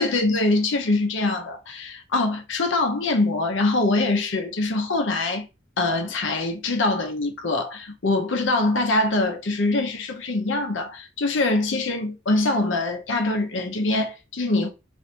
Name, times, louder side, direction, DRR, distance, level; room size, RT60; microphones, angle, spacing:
voice 1, 0.0-5.5 5.8-14.7, left 2 dB, 75° left, 0.7 m, -23 dB
3.2 x 2.6 x 2.8 m
head